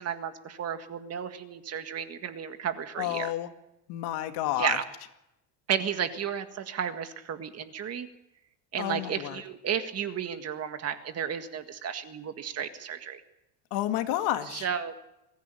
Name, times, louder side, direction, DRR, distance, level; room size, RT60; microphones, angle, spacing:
voice 1, 0.0-3.3 4.6-4.8 5.7-8.1 8.7-13.2 14.6-15.0, right 8 dB, 35° right, 8 dB, 1.8 m, -33 dB
voice 2, 3.0-3.5 3.9-4.8 8.8-9.4 13.7-14.7, left 13 dB, 65° left, 7 dB, 2.2 m, -30 dB
22.5 x 15.5 x 8.5 m, 0.88 s
cardioid pair, 150°, 42 cm